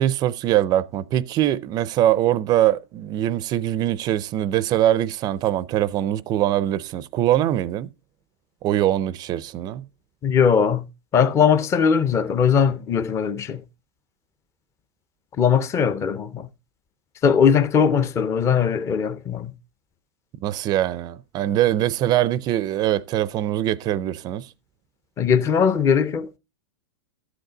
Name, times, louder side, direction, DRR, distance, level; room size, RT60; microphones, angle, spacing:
voice 1, 0.0-7.9 8.6-9.8 20.4-24.5, right 12 dB, 25° right, 0.5 m, -22 dB
voice 2, 10.2-10.8 11.1-13.6 15.4-16.5 17.2-19.5 25.2-26.3, left 7 dB, 20° left, 0.6 m, -19 dB
13.0 x 8.1 x 3.8 m
supercardioid pair, 145°, 15 cm